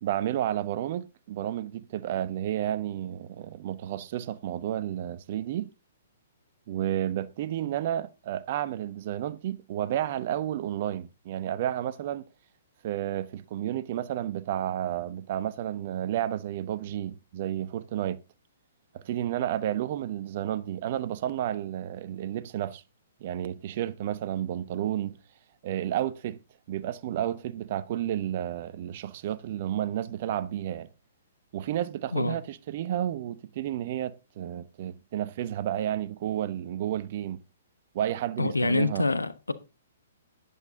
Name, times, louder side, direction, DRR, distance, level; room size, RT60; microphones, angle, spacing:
voice 1, 0.0-5.7 6.7-12.2 12.8-18.2 18.9-22.8 23.2-25.2 25.6-26.4 26.7-30.9 31.5-37.4 37.9-39.1, right 11 dB, 45° right, 1.0 m, -31 dB
voice 2, 38.4-39.5, left 3 dB, 85° left, 1.2 m, -26 dB
11.0 x 10.5 x 3.7 m
figure-of-eight pair, 120°, 0 cm